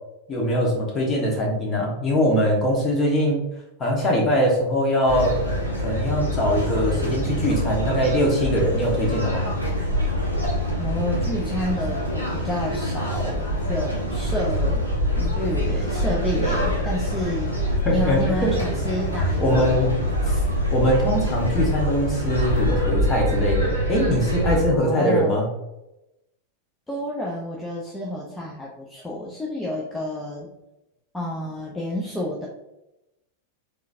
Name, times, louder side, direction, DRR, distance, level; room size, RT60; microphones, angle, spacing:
voice 1, 0.3-3.4 3.8-5.4 5.8-9.5 17.8-18.5 19.4-20.0 20.2-20.4 20.7-25.5, equal, 25° left, -2 dB, 1.2 m, -22 dB
sound 1, 5.1-24.6, equal, 85° left, 1.0 m, -25 dB
voice 2, 10.8-14.9 15.2-17.6 17.9-20.0 24.7-25.4 26.9-30.5 31.1-32.5, left 1 dB, 10° left, -3 dB, 0.6 m, -30 dB
3.7 x 3.4 x 2.6 m, 0.92 s
figure-of-eight pair, 90°, 0 cm